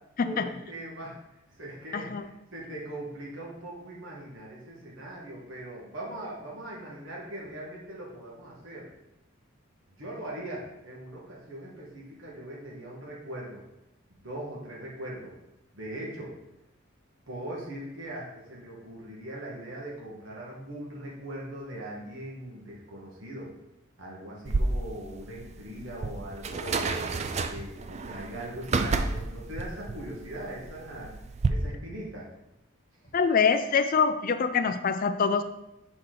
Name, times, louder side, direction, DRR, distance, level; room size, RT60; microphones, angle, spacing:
voice 1, 0.2-1.2 1.6-8.9 10.0-13.6 14.2-15.3 15.7-16.3 17.3-23.5 24.0-27.0 27.5-31.1 31.5-32.3, right 1 dB, 65° right, -4 dB, 1.6 m, -40 dB
voice 2, 1.9-2.3 33.1-35.4, left 5 dB, 45° left, 8 dB, 0.4 m, -24 dB
sound 1, 24.4-31.5, right 3 dB, 35° right, 0.4 m, -31 dB
6.4 x 4.3 x 3.9 m, 0.89 s
head